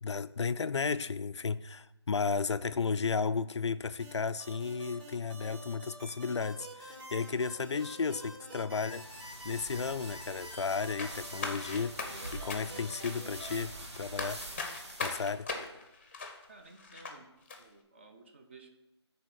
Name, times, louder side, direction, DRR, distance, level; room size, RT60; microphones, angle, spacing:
voice 1, 0.0-9.1 9.4-12.0 12.3-14.4 15.0-15.5, left 5 dB, 75° left, 0.4 m, -33 dB
sound 1, 4.0-13.6, equal, 50° right, 3.1 m, -48 dB
sound 2, 8.8-15.3, right 2 dB, 75° right, 1.8 m, -46 dB
sound 3, 11.0-17.2 17.5-17.6, left 3 dB, 25° left, 0.7 m, -40 dB
voice 2, 16.5-17.3 17.6-18.8, right 3 dB, 25° right, 0.6 m, -55 dB
8.8 x 3.5 x 6.4 m
figure-of-eight pair, 165°, 15 cm